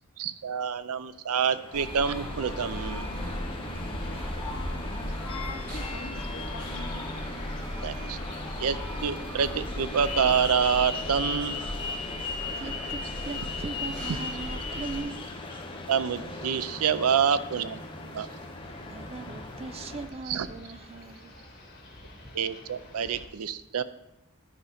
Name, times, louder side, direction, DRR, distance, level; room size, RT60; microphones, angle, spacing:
voice 1, 0.2-3.1 7.8-8.2 8.6-11.6 15.9-18.3 20.3-20.5 22.3-23.8, right 7 dB, 85° right, 14 dB, 0.5 m, -27 dB
sound 1, 1.3-20.1, left 2 dB, 25° left, 0.8 m, -41 dB
sound 2, 1.7-15.0, left 2 dB, 5° left, 3.4 m, -35 dB
voice 2, 4.1-7.0, left 4 dB, 85° left, 4 dB, 1.1 m, -44 dB
sound 3, 5.1-23.3, left 2 dB, 45° left, 2.2 m, -50 dB
voice 3, 12.6-15.3 18.6-21.3, right 4 dB, 25° right, 12 dB, 0.3 m, -40 dB
11.5 x 5.2 x 4.2 m, 0.91 s
head